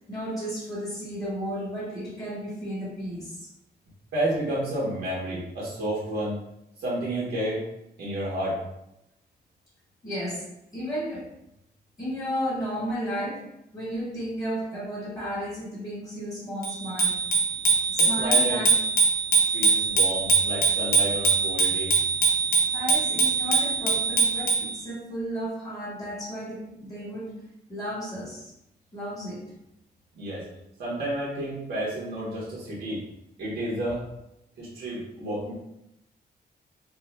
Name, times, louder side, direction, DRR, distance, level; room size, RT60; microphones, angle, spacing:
voice 1, 0.1-3.5 10.0-11.3 12.0-13.5 13.7-17.2 17.9-18.7 22.7-27.4 27.7-28.5 28.9-29.4, equal, 20° left, -9 dB, 1.4 m, -33 dB
voice 2, 4.1-6.4 6.8-7.6 8.0-8.6 18.0-18.6 19.5-21.9 30.2-30.4 30.8-33.0 33.4-34.0 34.6-35.5, right 1 dB, 75° right, -6 dB, 1.1 m, -30 dB
Bicycle bell, 16.6-24.7, right 4 dB, 55° left, 0.7 m, -23 dB
4.6 x 2.4 x 2.2 m, 0.84 s
wide cardioid pair, 170°, 18 cm